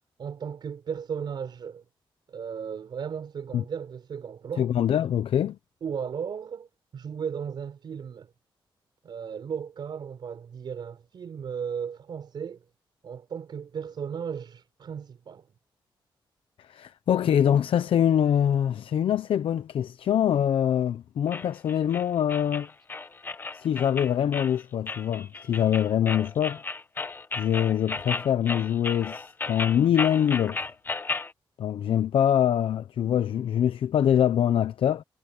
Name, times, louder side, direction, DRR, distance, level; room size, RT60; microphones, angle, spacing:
voice 1, 0.2-1.8 2.3-4.7 5.8-6.7 6.9-8.3 9.0-12.6 13.0-15.5, right 7 dB, 55° right, 4.6 m, -35 dB
voice 2, 4.6-5.6 16.6-22.7 23.5-26.6 27.4-30.6 31.6-35.0, left 9 dB, 85° left, 0.8 m, -24 dB
sound 1, 21.3-31.3, left 3 dB, 25° left, 1.1 m, -34 dB
wide cardioid pair, 165°, 9 cm